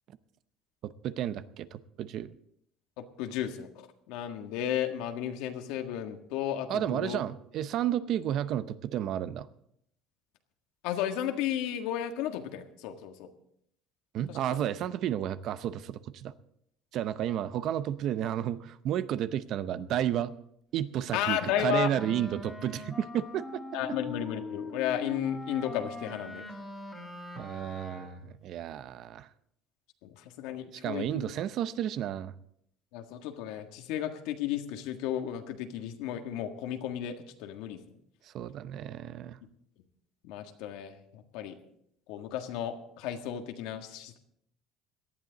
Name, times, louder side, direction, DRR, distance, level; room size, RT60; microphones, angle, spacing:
voice 1, 0.8-2.3 6.7-9.5 14.1-16.3 16.9-20.3 20.7-23.6 27.4-29.3 30.8-32.3 38.3-39.4, right 11 dB, 50° right, 14 dB, 0.6 m, -32 dB
voice 2, 3.0-7.2 10.8-13.3 14.3-14.7 21.1-21.9 23.7-26.4 30.0-31.3 32.9-37.8 40.2-41.6 42.1-44.2, left 10 dB, 80° left, 6 dB, 1.6 m, -34 dB
Wind instrument woodwind instrument, 21.0-28.3, left 3 dB, 10° left, 2.3 m, -42 dB
18.0 x 12.0 x 4.0 m, 0.71 s
cardioid pair, 150°, 0 cm